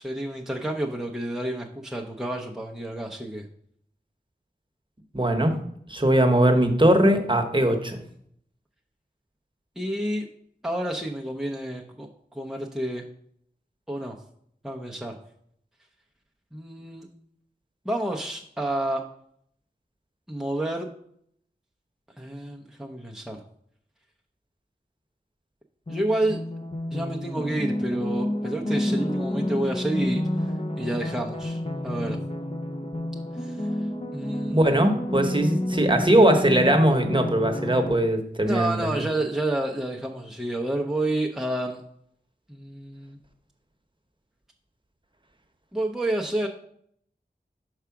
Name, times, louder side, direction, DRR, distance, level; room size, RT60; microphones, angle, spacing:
voice 1, 0.0-3.5 9.8-10.3 10.6-13.0 13.9-14.2 14.6-15.2 16.5-17.1 17.8-19.0 20.3-20.9 22.2-23.4 25.9-26.4 26.9-32.2 33.4-33.7 34.1-34.6 38.5-41.8 42.5-43.2 45.7-46.5, right 1 dB, ahead, 0 dB, 0.7 m, -29 dB
voice 2, 5.1-5.5 5.9-8.0 34.5-38.9, right 1 dB, 25° right, 4 dB, 1.0 m, -20 dB
sound 1, 25.9-37.9, left 1 dB, 30° left, 0.7 m, -29 dB
4.8 x 4.7 x 5.8 m, 0.68 s
wide cardioid pair, 40°, 19 cm